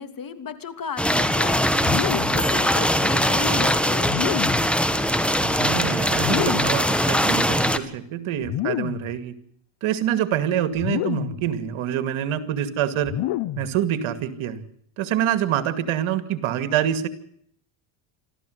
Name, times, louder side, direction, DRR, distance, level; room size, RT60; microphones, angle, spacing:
voice 1, 0.0-1.6 2.0-4.2, left 6 dB, 40° left, 10 dB, 2.9 m, -34 dB
sound 1, 1.0-7.8, equal, ahead, 1.9 m, -21 dB
sound 2, 1.8-2.5 4.0-4.7 6.1-6.9 8.4-9.1 10.8-11.5 13.0-13.8, left 15 dB, 65° left, 0.9 m, -28 dB
voice 2, 5.3-9.4 9.8-13.1 13.6-14.6 15.0-17.1, right 10 dB, 75° right, 11 dB, 2.4 m, -26 dB
26.0 x 14.0 x 8.0 m, 0.68 s
supercardioid pair, 85°, 50 cm